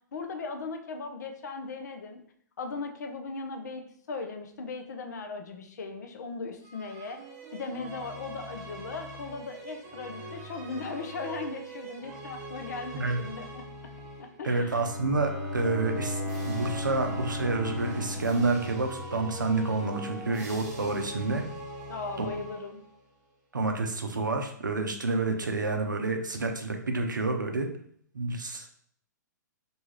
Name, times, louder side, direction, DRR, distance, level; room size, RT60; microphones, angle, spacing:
voice 1, 0.1-2.2 2.6-3.8 4.1-7.2 7.5-13.7 14.2-14.8 21.9-22.8, left 4 dB, 65° left, 5 dB, 0.5 m, -38 dB
sound 1, 6.6-14.5 15.1-23.0, right 2 dB, 30° right, 0.7 m, -42 dB
voice 2, 14.4-21.4 22.2-22.3 23.5-27.7 28.1-28.7, right 3 dB, 90° right, 5 dB, 0.5 m, -29 dB
Bowed string instrument, 14.5-19.5, left 2 dB, 85° left, 0.8 m, -36 dB
2.7 x 2.3 x 3.0 m, 0.63 s
figure-of-eight pair, 115°, 10 cm